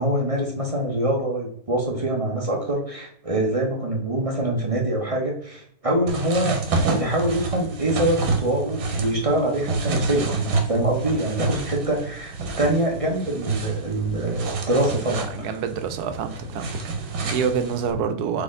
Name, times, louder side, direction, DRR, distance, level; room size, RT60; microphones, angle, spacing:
voice 1, 0.0-6.6 7.0-15.5, right 1 dB, 30° right, -1 dB, 0.7 m, -24 dB
sound 1, 6.1-17.9, right 3 dB, 70° right, 1.3 m, -28 dB
voice 2, 15.3-16.7 17.0-18.4, right 6 dB, 90° right, 8 dB, 1.2 m, -27 dB
4.1 x 3.4 x 3.7 m, 0.64 s
omnidirectional pair, 1.6 m